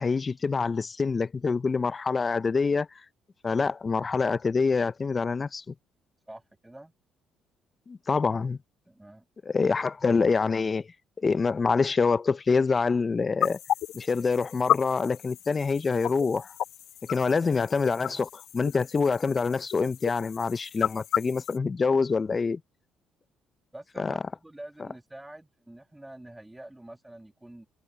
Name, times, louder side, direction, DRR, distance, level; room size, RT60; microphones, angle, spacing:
voice 1, 0.0-2.9 3.4-5.7 7.9-8.6 9.4-10.9 11.2-13.6 13.9-16.5 17.1-22.6 24.0-24.1, left 4 dB, 35° left, 0.9 m, -26 dB
voice 2, 6.3-6.9 8.9-9.2 17.1-17.2 23.7-27.7, right 1 dB, 10° right, 2.3 m, -46 dB
sound 1, 13.4-21.6, left 11 dB, 70° left, 1.3 m, -33 dB
hypercardioid pair, 60°, 0 cm